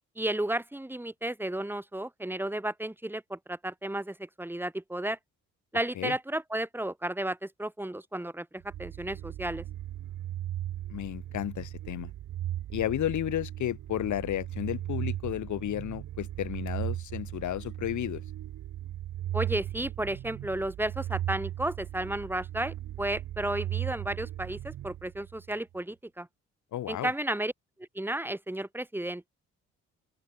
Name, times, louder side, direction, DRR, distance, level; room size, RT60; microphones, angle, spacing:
voice 1, 0.2-5.2 5.7-9.6 19.3-26.3 26.9-27.5 27.9-29.3, right 1 dB, 5° right, 3.3 m, -33 dB
sound 1, 8.6-25.5, right 12 dB, 75° right, 3.1 m, -37 dB
voice 2, 10.9-12.1 12.7-18.2 26.7-27.1, left 12 dB, 75° left, 3.2 m, -32 dB
open air
cardioid pair, 90°, 30 cm